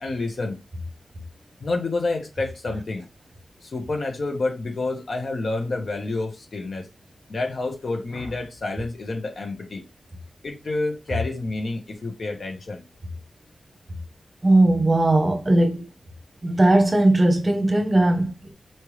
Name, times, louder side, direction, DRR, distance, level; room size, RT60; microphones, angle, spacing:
voice 1, 0.0-0.6 1.6-3.0 3.6-6.9 7.3-9.8 10.4-12.8, left 2 dB, 50° left, 1.2 m, -29 dB
voice 2, 14.4-15.8 16.4-18.5, right 1 dB, 25° right, 0.9 m, -18 dB
4.5 x 3.4 x 3.2 m
wide cardioid pair, 155°, 0 cm